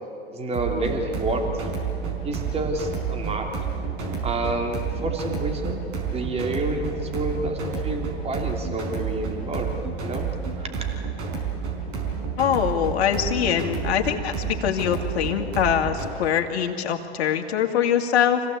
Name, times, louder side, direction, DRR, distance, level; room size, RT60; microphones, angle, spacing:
voice 1, 0.3-1.7 2.2-3.5 4.2-5.8 6.1-9.7 10.0-10.3 10.6-10.8, right 2 dB, 20° right, 3 dB, 3.0 m, -29 dB
sound 1, 0.5-16.1, right 6 dB, 45° right, 5.1 m, -30 dB
voice 2, 12.4-18.4, left 9 dB, 70° left, 3 dB, 2.3 m, -23 dB
25.5 x 16.5 x 8.4 m, 2.5 s
hypercardioid pair, 110°, 33 cm